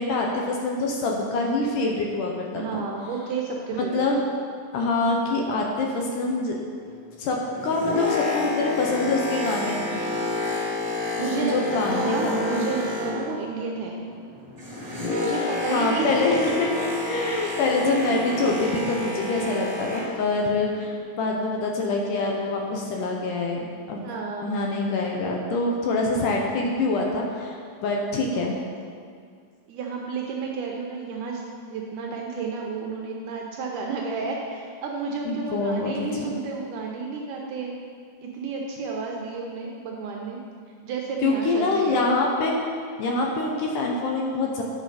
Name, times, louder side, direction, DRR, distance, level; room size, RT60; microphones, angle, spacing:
voice 1, 0.0-2.8 3.8-4.2 4.7-6.6 7.2-10.1 11.3-12.7 13.0-13.1 15.7-24.1 24.4-28.5 35.3-35.9 41.2-42.6 43.0-44.6, left 2 dB, 75° left, -1 dB, 2.1 m, -25 dB
voice 2, 2.5-4.1 11.2-11.6 11.9-14.1 15.1-16.2 24.0-24.5 29.7-37.7 38.2-40.4 40.8-42.1, right 4 dB, 75° right, 0 dB, 1.9 m, -31 dB
Boat Water vehicle, 7.4-13.5 13.8-20.2 20.9-21.0, left 3 dB, 20° right, 1.9 m, -29 dB
8.7 x 5.7 x 4.9 m, 2.1 s
omnidirectional pair, 4.2 m